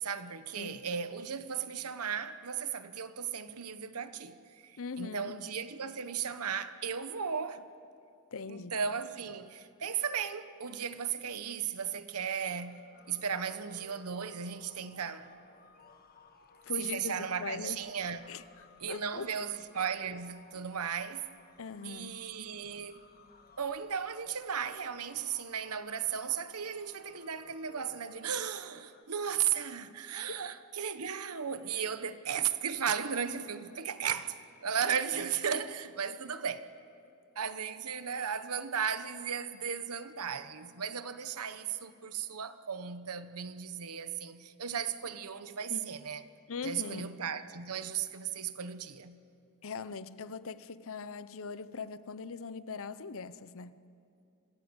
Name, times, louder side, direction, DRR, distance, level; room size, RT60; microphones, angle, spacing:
voice 1, 0.0-7.6 8.5-15.3 16.8-18.3 18.8-21.3 21.8-23.0 23.6-36.7 37.3-46.2 46.6-49.2, right 7 dB, 80° right, 1.1 m, -36 dB
voice 2, 4.8-5.4 8.3-8.7 16.7-17.8 18.3-18.4 18.9-19.3 21.6-22.2 45.7-45.9 46.5-47.1 49.6-53.7, left 4 dB, 65° left, 0.8 m, -40 dB
sound 1, 12.5-29.0, left 4 dB, 45° left, 1.5 m, -60 dB
26.5 x 19.5 x 8.1 m
head